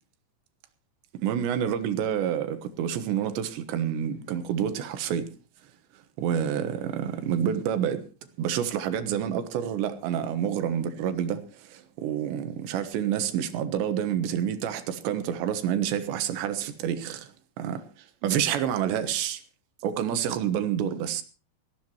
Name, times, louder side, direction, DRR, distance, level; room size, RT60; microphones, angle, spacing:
voice 1, 1.1-5.3 6.2-8.0 8.4-17.3 17.6-17.8 18.2-19.4 19.8-21.2, right 9 dB, 75° right, 3.3 m, -28 dB
21.0 x 15.0 x 3.1 m
omnidirectional pair, 5.5 m